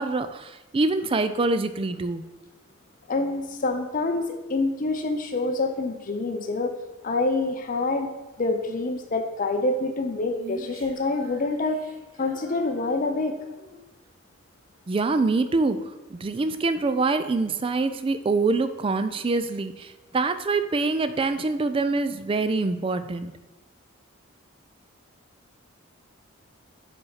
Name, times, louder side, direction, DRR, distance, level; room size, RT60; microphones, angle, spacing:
voice 1, 0.0-2.2 14.9-23.3, right 3 dB, 25° right, 11 dB, 0.3 m, -25 dB
voice 2, 3.1-6.7 7.0-8.1 8.4-11.8 12.2-13.4, left 2 dB, 40° left, 5 dB, 0.5 m, -26 dB
Female singing, 10.3-13.9, right 3 dB, 85° right, 1.1 m, -45 dB
5.4 x 4.5 x 5.6 m, 1.1 s
head